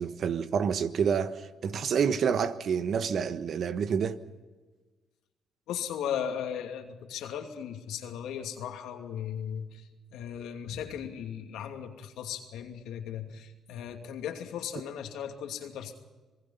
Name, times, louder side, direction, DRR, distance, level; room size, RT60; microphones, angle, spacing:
voice 1, 0.0-4.2, right 7 dB, 60° right, 1.3 m, -28 dB
voice 2, 5.7-16.0, left 8 dB, 85° left, 2.6 m, -37 dB
27.0 x 20.0 x 5.7 m
cardioid pair, 75°, 0 cm